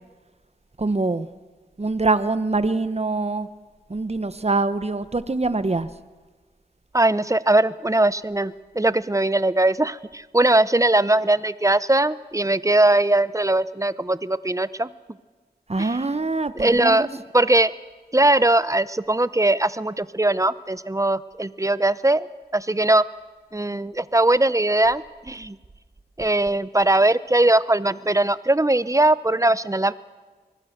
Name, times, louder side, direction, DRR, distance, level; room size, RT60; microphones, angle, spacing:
voice 1, 0.8-1.3 1.8-3.5 3.9-5.9 15.7-17.1, right 3 dB, 40° right, 12 dB, 1.1 m, -24 dB
voice 2, 6.9-14.9 15.8-16.0 16.5-17.7 18.1-22.3 22.5-23.0 23.5-25.6 26.2-29.9, right 2 dB, 20° right, 16 dB, 0.7 m, -20 dB
24.5 x 18.5 x 6.6 m, 1.3 s
wide cardioid pair, 50°, 17 cm